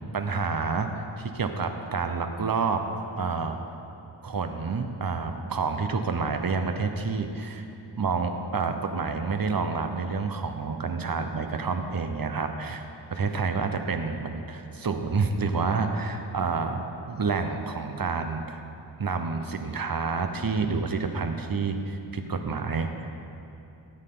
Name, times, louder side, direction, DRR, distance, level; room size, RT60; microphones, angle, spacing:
voice 1, 0.1-2.8 3.2-3.6 4.2-7.7 8.0-12.8 13.1-18.6 19.0-22.9, right 4 dB, 50° right, 6 dB, 1.0 m, -28 dB
17.0 x 9.0 x 3.9 m, 2.8 s
wide cardioid pair, 70°, 44 cm